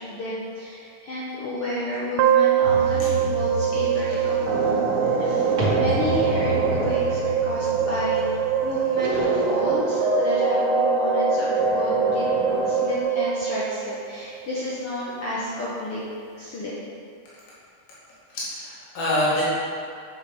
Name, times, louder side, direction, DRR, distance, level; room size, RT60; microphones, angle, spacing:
voice 1, 0.0-8.2 8.6-12.3 12.6-16.0 16.3-16.7, left 1 dB, 55° left, -8 dB, 1.8 m, -31 dB
sound 1, 2.2-14.4, right 9 dB, 90° right, 2.1 m, -24 dB
sound 2, 2.6-9.6, equal, 60° right, 2.8 m, -32 dB
sound 3, 3.4-13.0, equal, 45° right, 2.4 m, -27 dB
voice 2, 18.3-19.4, left 1 dB, 90° left, -9 dB, 3.7 m, -25 dB
8.5 x 6.8 x 5.4 m, 2.4 s
omnidirectional pair, 3.7 m